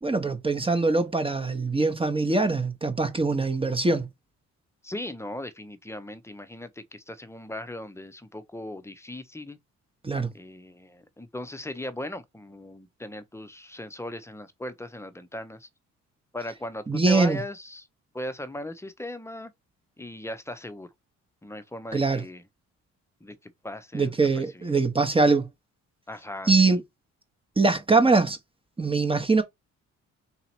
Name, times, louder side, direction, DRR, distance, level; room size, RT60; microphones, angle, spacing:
voice 1, 0.0-4.1 10.0-10.3 16.9-17.4 21.9-22.2 23.9-25.5 26.5-26.8 27.6-28.4 28.8-29.4, right 3 dB, 20° right, 1.0 m, -23 dB
voice 2, 4.8-9.6 10.3-15.7 16.3-17.9 18.1-19.5 20.0-20.9 21.4-22.4 23.2-24.8 26.1-26.8, left 1 dB, 10° left, 0.7 m, -38 dB
4.0 x 2.9 x 4.3 m
cardioid pair, 90°, 30 cm